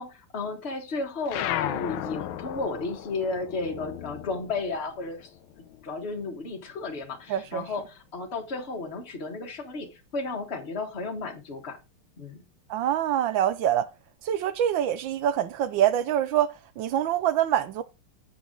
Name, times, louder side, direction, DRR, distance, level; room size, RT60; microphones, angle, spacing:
voice 1, 0.0-5.3 5.8-11.8 12.2-12.4, left 3 dB, 35° left, 1.6 m, -33 dB
sound 1, 1.3-6.1 6.4-7.9, left 13 dB, 80° left, 1.4 m, -35 dB
voice 2, 7.3-7.6 12.7-13.9 14.2-17.8, right 11 dB, 75° right, 1.3 m, -25 dB
7.7 x 7.0 x 3.8 m
omnidirectional pair, 2.2 m